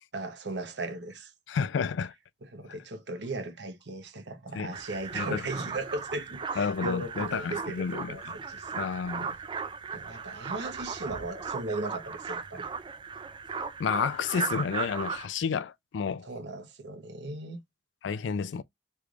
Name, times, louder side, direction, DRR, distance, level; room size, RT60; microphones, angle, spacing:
voice 1, 0.1-1.3 2.4-8.7 9.9-12.6 16.3-17.6, right 2 dB, 65° right, 0.9 m, -37 dB
voice 2, 1.5-2.1 4.5-4.7 5.1-5.4 6.6-8.3 8.7-9.3 13.8-16.3 18.0-18.6, left 6 dB, 80° left, 0.4 m, -31 dB
sound 1, 4.7-15.3, right 5 dB, 25° right, 0.3 m, -37 dB
3.2 x 3.2 x 2.4 m
head